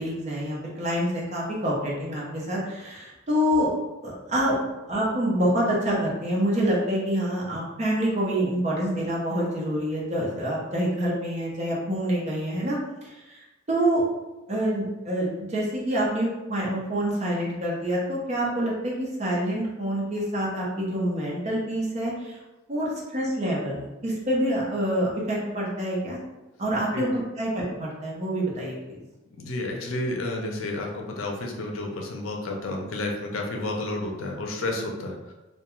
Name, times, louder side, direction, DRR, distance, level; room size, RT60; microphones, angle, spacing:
voice 1, 0.0-3.7 4.0-4.6 4.9-12.8 13.3-13.4 13.7-14.0 14.5-22.4 22.7-26.2 26.6-29.0, equal, 35° right, -4 dB, 0.6 m, -26 dB
voice 2, 29.4-35.3, left 2 dB, 80° left, 1 dB, 0.5 m, -31 dB
2.3 x 2.2 x 2.9 m, 1.1 s
head